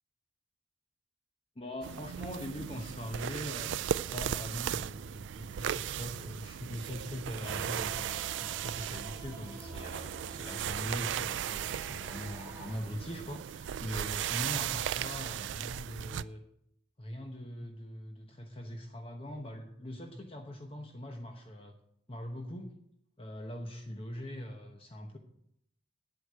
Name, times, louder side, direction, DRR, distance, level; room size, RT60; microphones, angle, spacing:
voice 1, 1.6-3.7 4.1-8.1 8.4-16.4 17.0-21.7 22.1-22.8 23.2-25.2, equal, 30° left, 3 dB, 1.0 m, -41 dB
sound 1, 1.8-16.2, right 10 dB, 70° right, 0.3 m, -37 dB
sound 2, 7.4-12.8, right 2 dB, 10° right, 1.6 m, -49 dB
9.3 x 8.2 x 6.6 m, 0.73 s
head